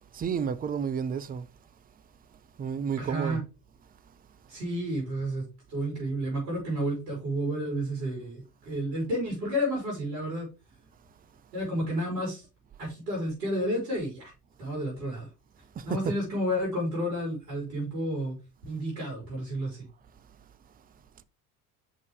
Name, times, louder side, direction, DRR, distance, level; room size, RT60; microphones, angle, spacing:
voice 1, 0.1-1.5 2.6-3.4 15.8-16.2, right 7 dB, 20° right, 0.5 m, -31 dB
voice 2, 3.0-3.4 4.5-5.4 5.7-10.5 11.5-12.5 12.8-14.3 14.6-15.3 15.8-18.4 18.7-19.8, equal, 75° right, 4.1 m, -31 dB
6.1 x 5.3 x 3.2 m
hypercardioid pair, 65°, 47 cm